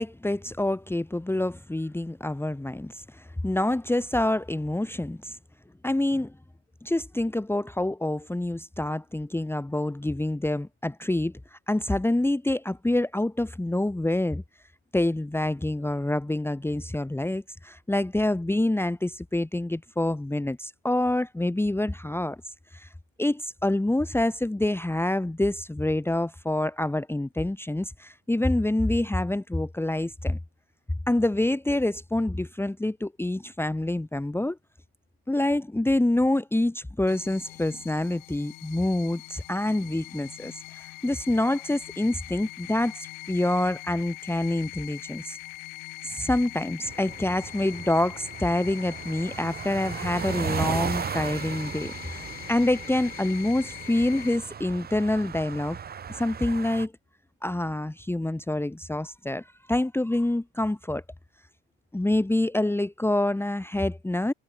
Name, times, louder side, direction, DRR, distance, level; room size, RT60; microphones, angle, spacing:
voice 1, 0.0-5.4 5.8-6.3 6.8-14.4 14.9-22.4 22.7-22.9 23.2-30.4 31.1-34.6 35.3-45.4 46.0-55.8 56.1-56.9 57.4-61.0 61.9-64.3, left 1 dB, 5° left, 1.5 m, -27 dB
sound 1, 37.1-54.4, left 26 dB, 75° left, 1.6 m, -42 dB
sound 2, 46.8-56.9, right 7 dB, 30° right, 0.9 m, -36 dB
hypercardioid pair, 70°, 33 cm